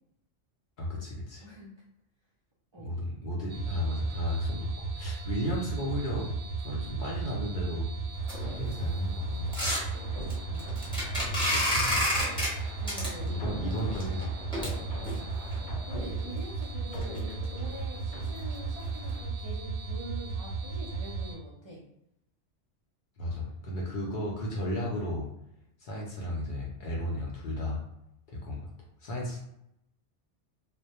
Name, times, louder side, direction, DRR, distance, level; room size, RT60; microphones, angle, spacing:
voice 1, 0.8-1.4 2.8-4.7 5.0-7.9 8.4-9.6 10.0-10.3 10.8-12.2 13.2-14.4 23.2-25.3 25.8-27.8 28.3-28.7 29.0-29.4, left 1 dB, 60° left, -3 dB, 0.6 m, -34 dB
sound 1, 3.5-21.4, right 4 dB, 65° right, 0.7 m, -35 dB
sound 2, 8.2-15.6 16.2-16.3 16.6-16.7 17.0-17.2 17.5-17.6 18.0-18.2 18.5-18.6 19.1-19.2, left 1 dB, 5° left, 0.7 m, -32 dB
sound 3, 8.4-9.0 9.4-12.7 13.2-16.5 16.9-18.8 19.1-19.4, left 1 dB, 80° left, 1.0 m, -43 dB
voice 2, 12.8-13.3 15.0-15.3 15.9-21.8, right 2 dB, 50° right, -6 dB, 0.3 m, -45 dB
2.1 x 2.0 x 2.8 m, 0.79 s
omnidirectional pair, 1.2 m